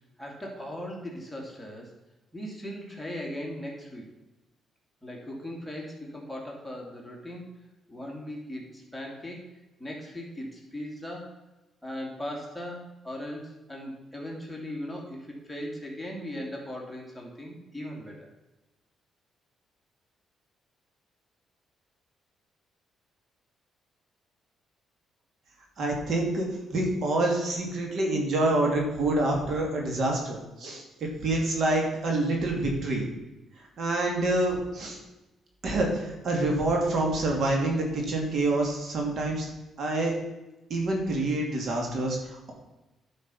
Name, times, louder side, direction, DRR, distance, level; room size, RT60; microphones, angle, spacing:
voice 1, 0.2-1.9 2.3-4.1 5.0-7.6 7.9-9.5 9.8-11.4 11.8-18.3, left 1 dB, 5° left, -2 dB, 2.6 m, -38 dB
voice 2, 25.8-30.8 31.2-33.1 33.8-35.0 35.6-39.5 39.8-40.1 40.7-42.5, right 2 dB, 60° right, 0 dB, 2.5 m, -27 dB
10.5 x 5.2 x 5.6 m, 1.0 s
cardioid pair, 90°, 0 cm